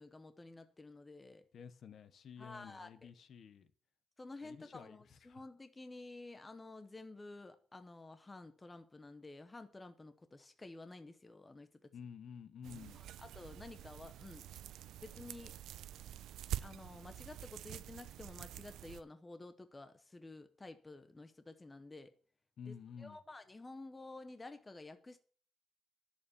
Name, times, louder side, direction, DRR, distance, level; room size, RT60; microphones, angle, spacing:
voice 1, 0.0-1.4 2.4-3.1 4.2-11.9 13.2-14.5 15.0-15.5 16.6-22.1 22.7-25.2, left 2 dB, 15° left, 0.7 m, -52 dB
voice 2, 1.5-3.7 4.4-5.4 11.9-13.0 14.5-14.6 22.6-23.2, left 7 dB, 45° left, 0.9 m, -51 dB
sound 1, 12.6-19.0, right 12 dB, 80° right, 0.5 m, -47 dB
11.5 x 7.0 x 6.9 m
cardioid pair, 180°, 0 cm